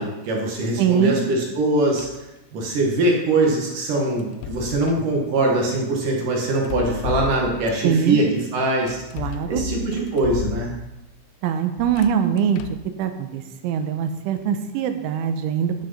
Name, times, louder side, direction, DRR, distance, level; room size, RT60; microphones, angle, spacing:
voice 1, 0.0-2.1 2.5-9.0 9.5-10.7, right 2 dB, 55° right, -1 dB, 2.6 m, -22 dB
voice 2, 0.8-1.2 7.8-8.2 9.1-9.6 11.4-12.6 13.0-15.8, right 8 dB, 90° right, 8 dB, 3.3 m, -22 dB
sound 1, 2.0-2.3 4.2-5.1 6.6-7.9 8.9-11.1 11.8-12.9, left 11 dB, 90° left, 3.1 m, -33 dB
12.0 x 6.5 x 5.7 m, 0.98 s
omnidirectional pair, 5.3 m